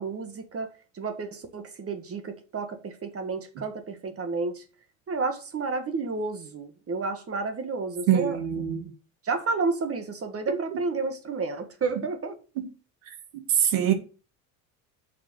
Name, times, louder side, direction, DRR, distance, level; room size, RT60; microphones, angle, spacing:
voice 1, 0.0-4.6 5.1-8.4 9.2-12.4, right 4 dB, 35° right, 1.8 m, -31 dB
voice 2, 8.1-8.9 10.5-10.6 12.6-12.7 13.3-13.9, right 10 dB, 80° right, 1.9 m, -24 dB
6.4 x 5.5 x 6.4 m
supercardioid pair, 90°, 41 cm